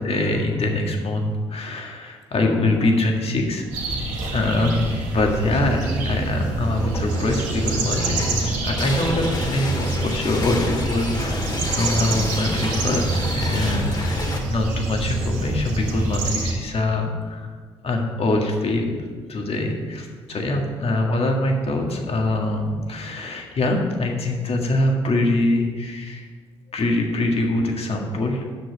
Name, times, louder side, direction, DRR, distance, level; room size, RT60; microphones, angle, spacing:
voice 1, 0.0-3.7 4.3-17.6 17.8-26.3 26.7-28.5, left 2 dB, 50° left, 2 dB, 1.8 m, -24 dB
sound 1, 3.7-16.5, right 2 dB, 85° right, 1.6 m, -26 dB
sound 2, 6.6-14.4, left 1 dB, 35° left, 2.0 m, -30 dB
7.8 x 6.4 x 6.4 m, 1.5 s
supercardioid pair, 55°, 13 cm